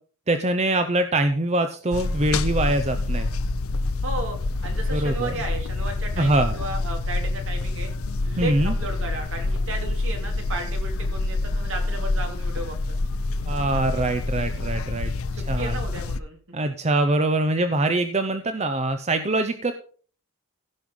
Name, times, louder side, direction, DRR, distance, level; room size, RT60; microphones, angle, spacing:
voice 1, 0.3-3.3 4.9-5.3 6.2-6.6 8.4-8.7 13.4-15.1 15.5-15.8 16.5-19.7, right 2 dB, 30° right, 9 dB, 0.7 m, -23 dB
sound 1, 1.9-16.2, left 2 dB, 75° left, 0.7 m, -27 dB
voice 2, 4.0-4.4 4.6-7.9 8.2-12.8 15.3-16.4 16.6-16.7, right 2 dB, 60° right, 3 dB, 3.1 m, -34 dB
16.0 x 5.5 x 5.4 m, 0.43 s
head